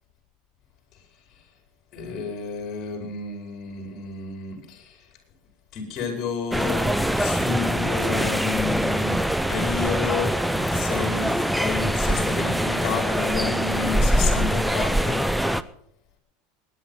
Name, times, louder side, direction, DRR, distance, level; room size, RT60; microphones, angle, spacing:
voice 1, 1.9-5.1 5.7-9.2 9.5-15.2, left 5 dB, 45° left, 3 dB, 5.1 m, -31 dB
sound 1, 6.5-15.6, equal, ahead, 0.7 m, -23 dB
19.0 x 10.0 x 5.7 m, 0.68 s
supercardioid pair, 105°, 0 cm